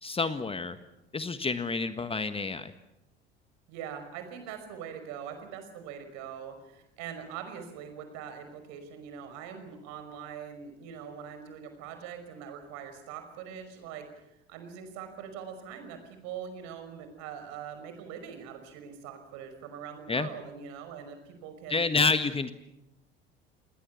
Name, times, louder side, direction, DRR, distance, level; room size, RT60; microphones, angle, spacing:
voice 1, 0.0-0.8 1.1-2.7 20.1-20.3 21.7-22.5, left 4 dB, 15° left, 11 dB, 1.5 m, -28 dB
voice 2, 3.7-21.9, right 8 dB, 55° right, 8 dB, 5.5 m, -42 dB
29.0 x 20.5 x 7.1 m, 0.89 s
figure-of-eight pair, 65°, 31 cm